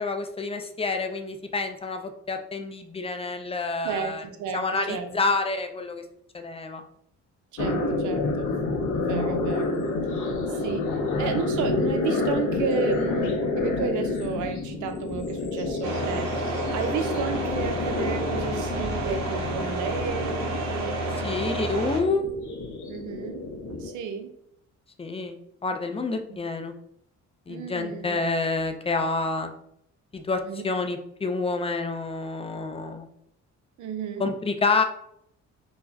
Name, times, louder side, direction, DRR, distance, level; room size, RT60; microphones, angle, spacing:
voice 1, 0.0-4.2 4.5-6.0 6.3-6.8 21.1-22.2 25.0-25.4 25.6-26.7 27.5-29.5 30.1-33.1 34.2-34.8, left 3 dB, 20° left, 6 dB, 0.4 m, -28 dB
voice 2, 3.8-5.2 7.5-8.6 8.9-9.9 10.5-10.9 11.2-21.1 22.9-24.3 26.3-26.4 27.5-28.2 30.4-30.6 33.8-34.3, right 6 dB, 75° right, 7 dB, 0.6 m, -32 dB
sound 1, 7.6-23.9, left 3 dB, 80° left, 0.7 m, -29 dB
sound 2, 15.8-22.0, right 2 dB, 60° right, 0.9 m, -30 dB
4.6 x 2.1 x 2.7 m, 0.74 s
cardioid pair, 90°, 30 cm